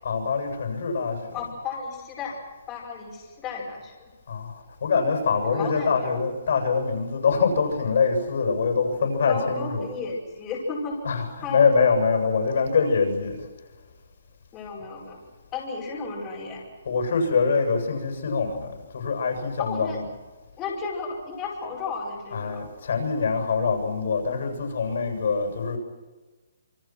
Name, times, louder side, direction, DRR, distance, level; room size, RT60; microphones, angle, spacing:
voice 1, 0.0-1.5 4.3-9.9 11.0-13.5 16.8-20.1 22.3-25.8, left 5 dB, 60° left, 7.8 m, -24 dB
voice 2, 1.3-2.4 2.7-4.1 5.5-6.0 9.3-11.0 11.4-11.9 14.5-15.2 15.5-16.6 19.6-20.0 20.6-22.7, left 4 dB, 15° left, 5.2 m, -33 dB
28.0 x 24.5 x 6.1 m
hypercardioid pair, 170°, 0 cm